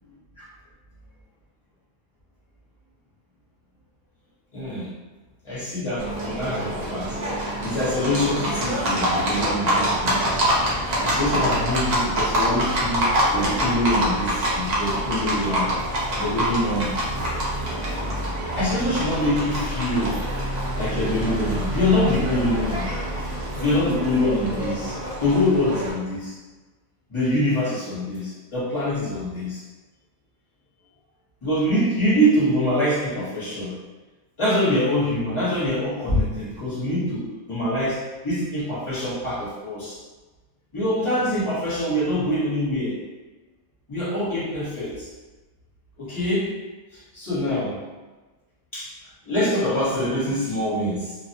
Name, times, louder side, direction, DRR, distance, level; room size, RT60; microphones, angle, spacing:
voice 1, 4.5-4.9 5.4-7.2 7.6-13.1 13.3-15.7 16.2-16.9 18.5-20.2 20.8-22.9 23.6-25.0 25.2-26.3 27.1-29.6 31.4-33.7 34.4-40.0 40.7-43.0 43.9-45.1 46.0-46.6 47.1-47.8 48.7-48.9 49.2-51.2, left 1 dB, 25° left, -10 dB, 0.9 m, -24 dB
Livestock farm animals working animals, 6.0-25.9, equal, 80° right, 0.3 m, -26 dB
2.4 x 2.1 x 2.6 m, 1.2 s
omnidirectional pair, 1.5 m